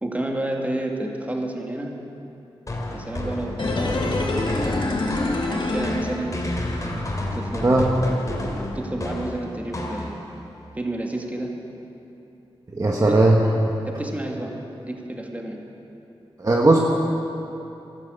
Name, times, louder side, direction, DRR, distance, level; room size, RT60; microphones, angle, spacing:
voice 1, 0.0-1.9 2.9-4.5 5.4-6.4 7.3-7.9 8.7-10.2 10.8-11.5 13.1-13.2 13.9-14.5 14.8-15.6, right 1 dB, 15° right, 1 dB, 2.0 m, -30 dB
sound 1, 2.7-10.5, left 1 dB, 35° left, 2.6 m, -30 dB
sound 2, 3.6-6.7 7.0-7.1, left 2 dB, 55° left, 1.9 m, -26 dB
voice 2, 12.7-13.4 16.4-16.8, right 2 dB, 35° right, -1 dB, 1.3 m, -17 dB
14.0 x 12.0 x 8.1 m, 2.9 s
wide cardioid pair, 85°, 10 cm